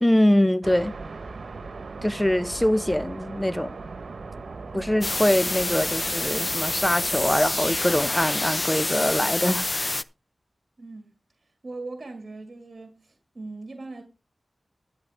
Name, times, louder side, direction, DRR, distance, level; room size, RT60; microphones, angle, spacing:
voice 1, 0.0-0.9 2.0-3.7 4.7-10.0, left 1 dB, 10° left, 0.8 m, -23 dB
sound 1, 0.6-7.9, right 3 dB, 85° right, 1.1 m, -38 dB
sound 2, 5.0-10.0, left 2 dB, 35° left, 0.5 m, -27 dB
voice 2, 10.8-11.1 11.6-14.0, right 3 dB, 55° right, 2.0 m, -40 dB
13.0 x 8.9 x 3.5 m
wide cardioid pair, 60°, 0 cm